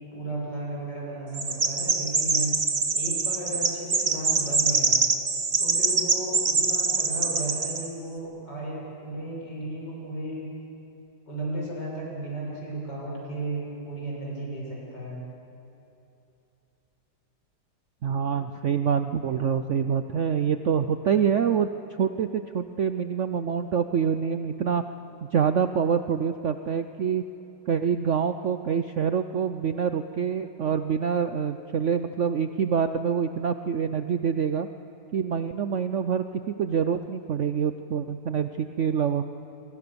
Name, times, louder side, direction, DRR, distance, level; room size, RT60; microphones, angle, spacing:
voice 1, 0.1-2.5 2.9-4.9 5.6-10.5 11.3-15.2, right 1 dB, 65° left, -4 dB, 7.6 m, -34 dB
Chirp tweet, 1.3-7.9, right 4 dB, 35° right, 1.4 m, -24 dB
voice 2, 18.0-21.7 22.0-24.8 25.2-27.2 27.7-34.7 35.1-39.2, right 7 dB, 65° right, 9 dB, 0.7 m, -26 dB
28.0 x 23.5 x 6.9 m, 2.8 s
omnidirectional pair, 2.0 m